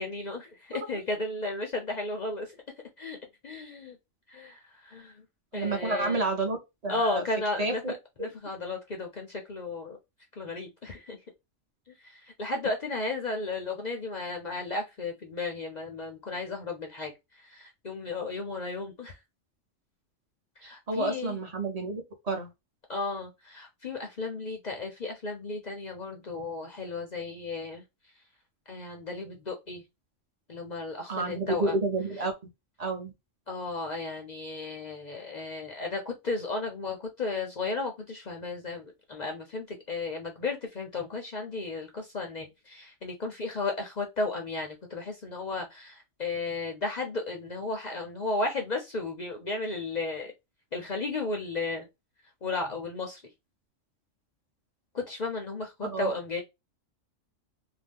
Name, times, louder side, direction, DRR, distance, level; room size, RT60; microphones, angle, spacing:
voice 1, 0.0-2.6 3.0-3.2 3.4-4.0 4.3-5.2 5.5-6.2 6.9-7.8 8.2-10.0 10.3-11.2 11.9-19.2 20.6-21.4 22.9-27.8 28.7-29.8 30.5-31.8 33.5-50.3 50.7-51.9 52.4-53.2 54.9-56.4, left 3 dB, 50° left, 0.5 m, -34 dB
voice 2, 5.5-6.6 6.8-7.2 7.6-7.9 8.2-8.3 20.9-22.5 31.1-32.3 32.8-33.1 55.8-56.1, right 2 dB, 35° right, 0.9 m, -29 dB
2.7 x 2.2 x 3.4 m
omnidirectional pair, 1.3 m